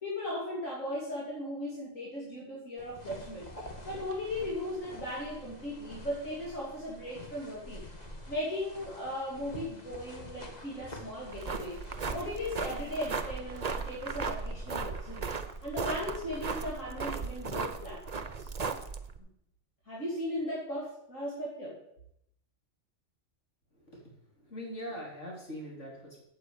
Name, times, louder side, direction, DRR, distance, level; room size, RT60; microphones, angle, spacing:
voice 1, 0.0-3.5 3.8-7.9 8.3-11.8 12.1-15.3 15.6-18.5 19.9-21.8, left 1 dB, 85° left, -5 dB, 3.3 m, -37 dB
sound 1, 2.8-16.2, left 1 dB, 35° left, 1.9 m, -48 dB
sound 2, 11.2-19.2, right 5 dB, 35° right, 0.9 m, -36 dB
voice 2, 23.7-26.2, equal, 65° left, -3 dB, 4.4 m, -43 dB
9.5 x 8.0 x 8.4 m, 0.77 s
omnidirectional pair, 1.3 m